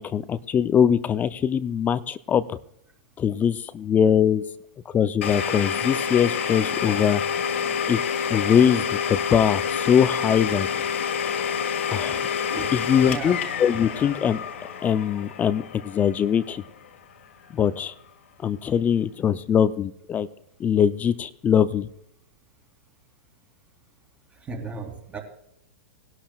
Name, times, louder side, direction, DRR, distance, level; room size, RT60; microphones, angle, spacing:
voice 1, 0.0-2.6 3.2-4.4 4.9-7.2 7.9-8.0 8.3-10.7 11.9-12.2 12.7-14.4 14.8-16.6 17.5-17.9 18.4-20.3 20.6-21.9, left 8 dB, 25° left, 14 dB, 0.5 m, -22 dB
Domestic sounds home sounds, 5.2-16.9, left 7 dB, 80° left, 1.7 m, -28 dB
voice 2, 13.0-13.4 24.3-25.2, right 4 dB, 20° right, 4 dB, 3.0 m, -35 dB
19.0 x 11.5 x 2.4 m, 0.75 s
hypercardioid pair, 115°, 7 cm